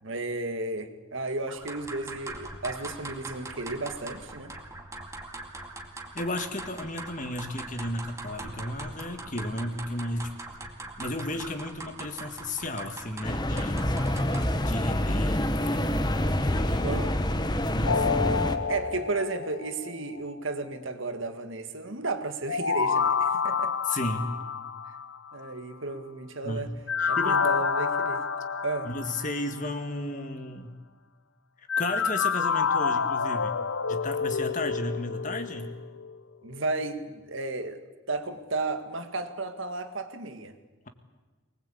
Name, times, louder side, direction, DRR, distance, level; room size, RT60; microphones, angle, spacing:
voice 1, 0.0-4.5 16.8-17.2 18.7-23.7 25.3-26.7 27.1-28.3 28.6-28.9 36.4-37.8 38.1-40.5, right 3 dB, 75° right, 8 dB, 1.9 m, -33 dB
sound 1, 1.5-14.7, right 2 dB, 15° right, 2.3 m, -41 dB
voice 2, 6.1-10.3 11.0-13.8 14.7-17.0 17.7-18.1 23.9-24.3 26.4-27.5 28.9-30.7 31.6-33.5 33.9-35.7, left 1 dB, 40° left, 8 dB, 1.9 m, -34 dB
sound 2, 13.2-18.6, left 1 dB, 20° left, 1.2 m, -27 dB
sound 3, 17.9-20.2 22.5-25.4 26.9-29.6 31.7-36.2 36.5-36.6, left 5 dB, 85° left, 0.9 m, -28 dB
23.5 x 20.0 x 8.6 m, 1.2 s
head